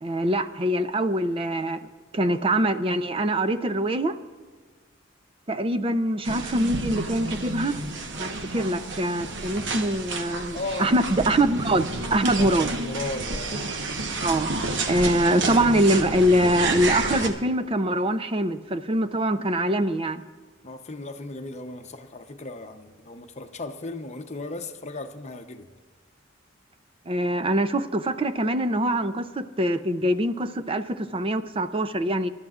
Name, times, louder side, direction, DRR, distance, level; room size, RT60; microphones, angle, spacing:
voice 1, 0.0-1.8 2.1-4.1 5.5-7.8 8.2-12.7 14.2-14.5 14.9-20.2 27.1-32.3, right 1 dB, 30° right, 0.5 m, -24 dB
sound 1, 6.2-17.3, right 3 dB, 65° right, 1.1 m, -30 dB
voice 2, 10.5-10.9 12.4-13.6 20.6-25.7, left 2 dB, 35° left, 0.8 m, -36 dB
26.5 x 12.5 x 2.4 m
head